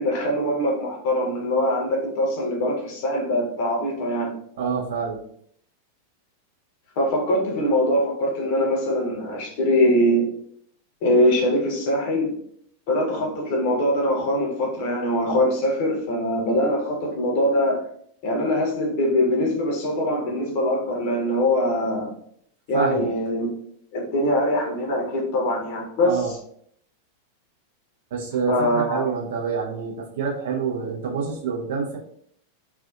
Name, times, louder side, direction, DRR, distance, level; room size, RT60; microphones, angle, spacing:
voice 1, 0.0-4.3 7.0-10.3 11.0-12.3 12.9-17.8 18.2-22.1 22.7-23.5 23.9-26.4 28.5-29.1, left 1 dB, 50° left, -1 dB, 0.8 m, -22 dB
voice 2, 4.6-5.2 22.7-23.1 26.0-26.3 28.1-32.0, right 5 dB, 55° right, -1 dB, 0.6 m, -27 dB
2.5 x 2.4 x 2.3 m, 0.65 s
figure-of-eight pair, 90°, 0 cm